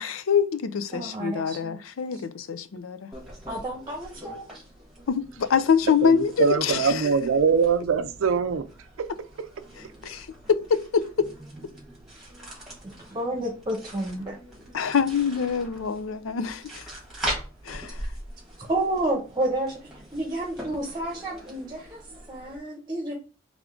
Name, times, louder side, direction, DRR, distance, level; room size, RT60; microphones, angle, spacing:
voice 1, 0.0-3.1 5.1-7.1 9.8-11.3 14.7-16.9 17.6-18.0, left 6 dB, 85° left, 0.5 m, -25 dB
voice 2, 0.9-1.8 2.1-2.2 3.5-4.5 12.8-14.4 18.6-23.1, right 1 dB, 20° right, 0.9 m, -30 dB
sound 1, 3.1-22.6, right 1 dB, ahead, 1.6 m, -41 dB
voice 3, 6.4-8.7 9.0-9.1, right 5 dB, 80° right, 0.4 m, -22 dB
3.5 x 3.5 x 3.7 m
head